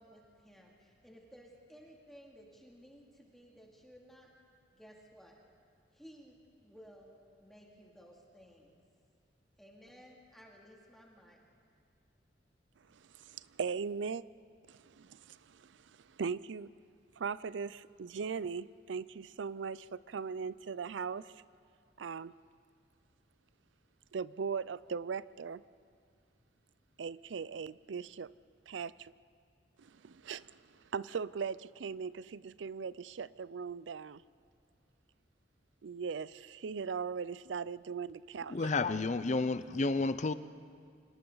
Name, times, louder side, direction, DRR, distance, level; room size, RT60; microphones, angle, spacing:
voice 1, 0.0-4.3 4.7-5.3 5.9-7.1 7.4-8.8 9.6-11.4, equal, ahead, 2.5 m, -57 dB
voice 2, 12.9-14.2 14.7-16.7 17.2-21.4 22.0-22.3 24.1-25.6 27.0-28.3 28.7-29.1 29.8-34.2 35.8-38.7, right 5 dB, 85° right, 0.5 m, -39 dB
voice 3, 38.5-40.3, left 3 dB, 40° left, 0.6 m, -31 dB
28.5 x 26.0 x 4.0 m
head